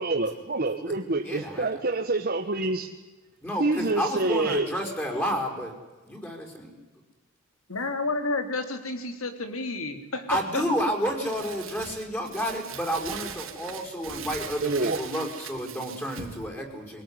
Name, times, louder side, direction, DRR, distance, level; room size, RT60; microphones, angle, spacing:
voice 1, 0.0-2.9 3.6-4.7 14.6-15.0, right 2 dB, 45° right, 3 dB, 1.5 m, -26 dB
voice 2, 1.2-1.7 3.4-5.7 6.1-6.7 10.3-17.0, equal, 10° left, 1 dB, 5.6 m, -30 dB
voice 3, 7.7-10.3 10.5-10.6, left 3 dB, 80° left, 8 dB, 3.1 m, -30 dB
Crumpling crinkling, 11.2-16.4, right 7 dB, 80° right, 3.7 m, -40 dB
25.0 x 18.5 x 10.0 m, 1.2 s
head